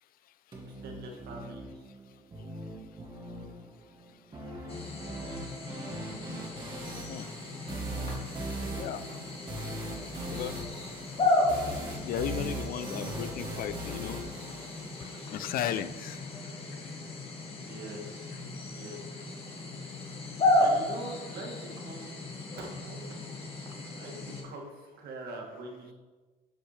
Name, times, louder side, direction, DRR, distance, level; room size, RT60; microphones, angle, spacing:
sound 1, 0.5-15.5, right 1 dB, 25° right, 1.8 m, -40 dB
voice 1, 0.7-1.9 17.4-18.3 18.7-19.0 20.6-22.2 22.5-23.0 24.0-25.9, right 2 dB, 70° right, 1 dB, 1.5 m, -43 dB
sound 2, 4.7-24.4, left 2 dB, 35° left, 1.5 m, -34 dB
voice 2, 12.0-14.2 15.3-16.2, left 10 dB, 60° left, 13 dB, 0.4 m, -35 dB
8.1 x 5.3 x 3.3 m, 1.3 s
cardioid pair, 110°, 17 cm